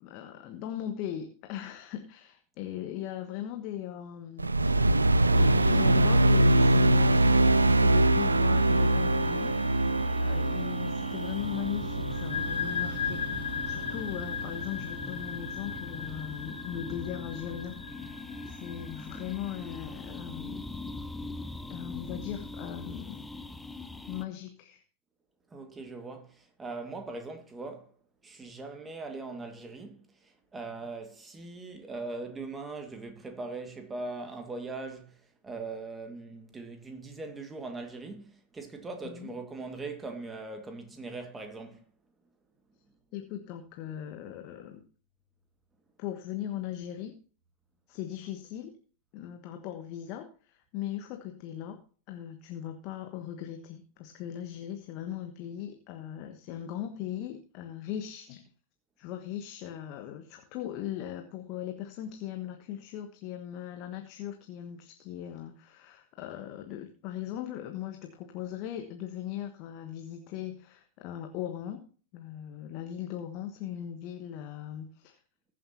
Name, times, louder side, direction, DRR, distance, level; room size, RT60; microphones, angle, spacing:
voice 1, 0.0-4.8 5.3-13.2 13.6-17.8 18.4-20.7 21.7-23.3 24.1-24.8 39.0-39.3 43.1-44.8 46.0-47.1 47.9-48.7 49.1-51.8 52.1-58.4 59.0-71.8 72.1-75.2, left 11 dB, 40° left, 1.3 m, -39 dB
sound 1, 4.4-14.9, right 1 dB, 80° right, 0.5 m, -24 dB
sound 2, 5.3-24.2, left 2 dB, 10° left, 0.7 m, -42 dB
sound 3, 12.1-19.5, left 7 dB, 65° left, 2.7 m, -37 dB
voice 2, 25.5-27.9 28.2-41.9, right 3 dB, 15° right, 2.0 m, -40 dB
20.5 x 7.4 x 2.9 m
figure-of-eight pair, 90°, 0 cm